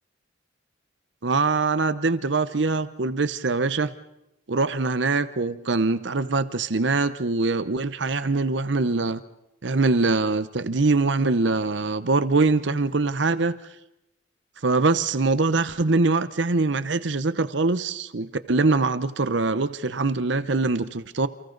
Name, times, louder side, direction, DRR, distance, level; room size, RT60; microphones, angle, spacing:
voice 1, 1.2-3.9 4.5-9.2 9.6-13.6 14.6-21.3, right 3 dB, 65° right, 0.9 m, -23 dB
29.5 x 29.0 x 4.0 m
head